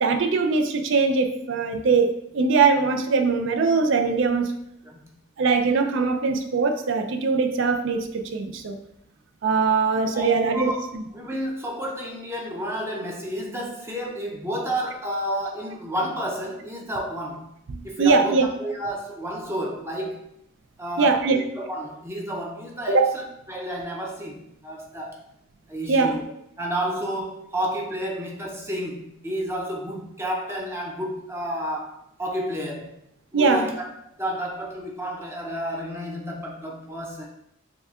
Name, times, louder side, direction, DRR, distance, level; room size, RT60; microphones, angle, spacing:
voice 1, 0.0-4.5 5.4-8.8 9.4-11.0 17.7-18.5 21.0-21.4 22.9-23.1 25.9-26.1 33.3-33.7, right 4 dB, 60° right, 6 dB, 0.4 m, -21 dB
voice 2, 9.9-10.9 11.1-17.5 17.8-20.2 20.8-23.2 23.5-25.2 25.7-26.2 26.6-32.9 33.3-33.8 34.2-37.3, equal, 10° right, -1 dB, 0.6 m, -31 dB
6.8 x 2.3 x 2.4 m, 0.75 s
head